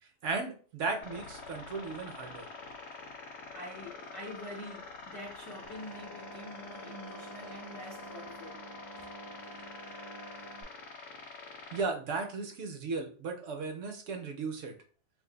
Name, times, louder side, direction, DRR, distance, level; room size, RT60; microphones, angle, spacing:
voice 1, 0.2-2.5 11.7-14.7, right 4 dB, 70° right, 0.9 m, -35 dB
sound 1, 1.0-11.8, left 4 dB, 60° left, 0.9 m, -46 dB
voice 2, 3.2-9.1, left 1 dB, 30° left, 0.5 m, -46 dB
sound 2, 5.6-10.6, right 1 dB, 25° right, 0.5 m, -49 dB
2.5 x 2.5 x 3.8 m
omnidirectional pair, 1.4 m